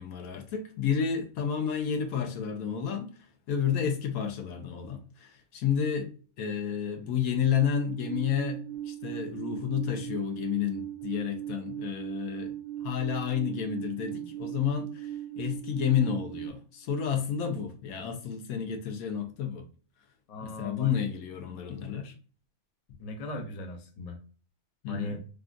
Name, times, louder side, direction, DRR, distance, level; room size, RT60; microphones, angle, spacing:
voice 1, 0.0-3.1 3.5-6.1 6.4-12.5 12.8-15.1 15.4-19.6 20.4-22.1 24.8-25.1, left 8 dB, 75° left, 1.1 m, -30 dB
Alarm, 7.6-16.5, right 12 dB, 35° right, 0.8 m, -38 dB
voice 2, 20.3-20.9 23.0-24.2 24.9-25.2, left 1 dB, 55° left, 0.4 m, -38 dB
3.5 x 2.4 x 2.4 m
omnidirectional pair, 1.6 m